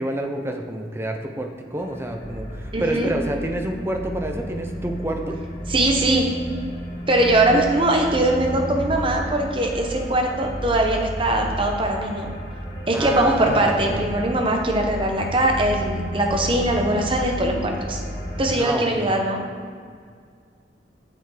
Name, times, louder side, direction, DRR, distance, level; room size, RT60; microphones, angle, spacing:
voice 1, 0.0-5.4 7.5-7.6 12.9-14.0 18.5-19.2, right 1 dB, 15° right, 3 dB, 0.7 m, -28 dB
sound 1, 1.7-18.5, equal, 30° left, 2.0 m, -32 dB
voice 2, 2.7-3.1 5.7-6.3 7.1-12.3 12.9-18.0 18.4-19.4, right 1 dB, 30° right, 2 dB, 1.0 m, -21 dB
7.0 x 6.6 x 5.0 m, 2.1 s
head